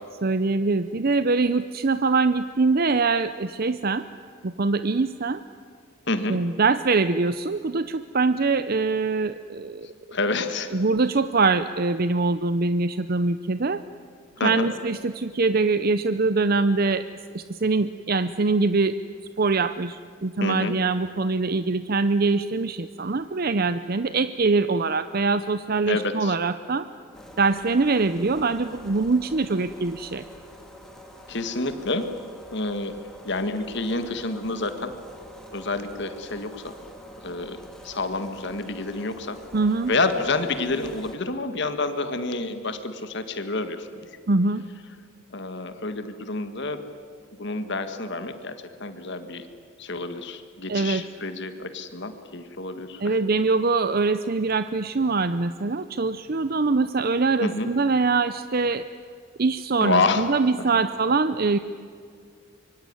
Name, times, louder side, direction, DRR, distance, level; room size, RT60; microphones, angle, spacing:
voice 1, 0.2-4.1 4.4-5.4 6.3-9.9 10.7-13.8 14.4-17.1 17.3-19.0 19.4-26.9 27.4-30.2 39.5-39.9 44.3-44.7 50.7-51.0 53.0-58.9 59.4-61.6, right 3 dB, 45° right, 12 dB, 0.6 m, -23 dB
voice 2, 6.1-6.4 10.1-10.8 14.4-14.7 20.4-20.7 25.9-26.4 31.3-32.1 32.5-32.9 33.2-34.9 35.5-36.8 37.2-39.4 39.9-44.1 45.3-46.8 47.4-49.5 49.8-53.2 57.4-57.7 59.8-60.3 60.6-60.8, left 3 dB, 55° left, 9 dB, 1.7 m, -28 dB
sound 1, 27.1-41.2, equal, 5° left, 2.9 m, -45 dB
25.5 x 23.5 x 9.7 m, 2.3 s
head